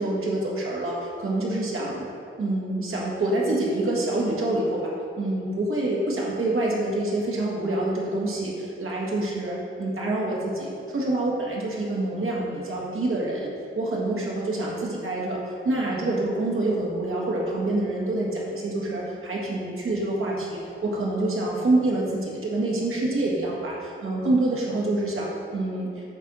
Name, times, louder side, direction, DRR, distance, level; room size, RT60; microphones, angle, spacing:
voice 1, 0.0-2.1 2.4-26.0, right 2 dB, 90° right, -4 dB, 1.8 m, -26 dB
7.9 x 4.2 x 6.1 m, 2.5 s
wide cardioid pair, 170°, 21 cm